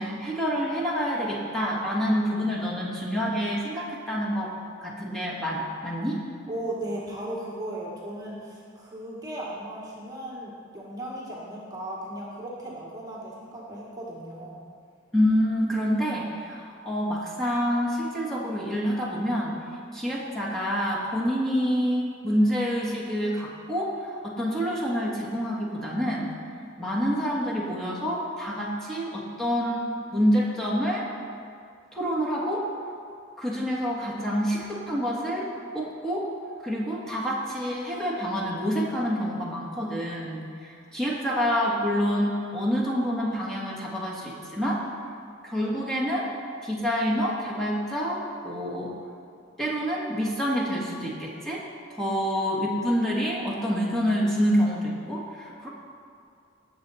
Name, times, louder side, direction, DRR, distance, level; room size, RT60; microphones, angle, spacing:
voice 1, 0.0-4.5 4.8-6.2 15.1-19.6 19.9-26.3 26.8-31.1 31.9-32.7 33.4-36.3 36.6-44.8 45.4-46.3 46.6-48.9 49.6-51.6 51.9-55.7, equal, ahead, -6 dB, 1.7 m, -27 dB
voice 2, 6.5-14.6, right 1 dB, 20° right, -5 dB, 1.5 m, -36 dB
18.5 x 7.0 x 4.2 m, 2.4 s
head